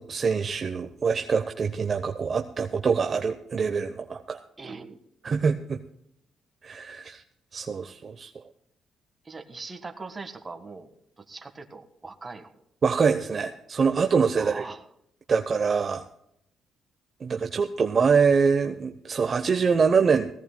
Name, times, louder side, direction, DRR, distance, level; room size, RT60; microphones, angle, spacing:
voice 1, 0.0-4.4 5.2-5.8 6.6-7.2 7.5-8.3 12.8-14.6 15.3-16.0 17.2-20.3, right 5 dB, 45° right, 6 dB, 0.8 m, -24 dB
voice 2, 4.6-5.0 9.2-10.9 11.2-12.6 14.3-14.8, right 3 dB, 25° right, 7 dB, 1.6 m, -40 dB
19.0 x 16.5 x 2.2 m, 0.75 s
cardioid pair, 90°, 0 cm